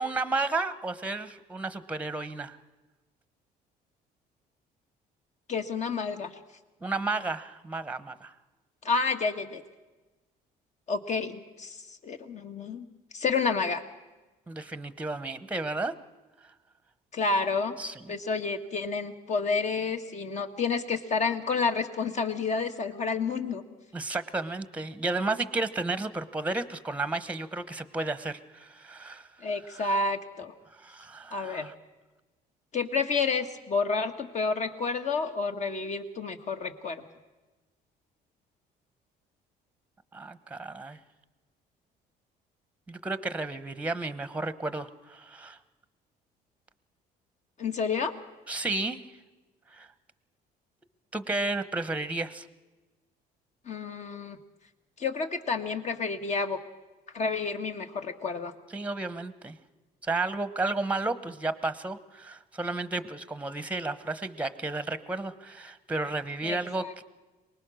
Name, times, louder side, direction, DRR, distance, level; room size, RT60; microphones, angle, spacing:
voice 1, 0.0-2.6 6.8-8.3 14.5-15.9 17.8-18.0 23.9-29.3 29.7-30.0 30.7-31.7 40.1-41.0 42.9-45.6 48.5-49.0 49.7-49.9 51.1-52.5 58.7-59.6 60.0-67.0, right 3 dB, 10° right, 13 dB, 1.0 m, -32 dB
voice 2, 5.5-6.3 8.8-9.6 10.9-12.9 13.1-13.8 17.1-17.8 18.1-23.6 29.4-30.5 31.3-31.7 32.7-37.0 47.6-48.1 53.7-54.4 55.0-56.6 57.1-58.5 66.4-66.9, left 4 dB, 45° left, 7 dB, 1.7 m, -30 dB
23.5 x 20.0 x 6.4 m, 1.2 s
cardioid pair, 110°, 17 cm